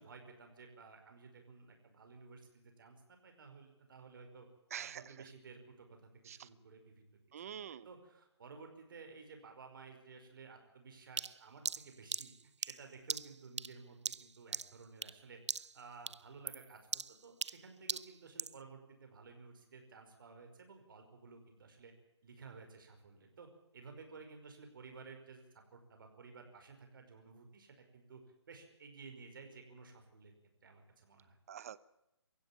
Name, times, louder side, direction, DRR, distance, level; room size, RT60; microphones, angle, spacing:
voice 1, 0.0-4.5 4.8-7.0 7.5-21.9 22.2-28.2 28.5-30.3 30.6-31.4, right 4 dB, 50° right, 5 dB, 5.3 m, -55 dB
voice 2, 4.7-5.1 6.3-6.5 7.3-7.9 31.5-31.9, right 9 dB, 30° right, 18 dB, 0.8 m, -46 dB
sound 1, 11.2-15.2 15.5-15.8 16.1-18.6, right 5 dB, 80° right, 0.7 m, -41 dB
22.5 x 15.5 x 7.3 m, 0.88 s
hypercardioid pair, 165°, 15 cm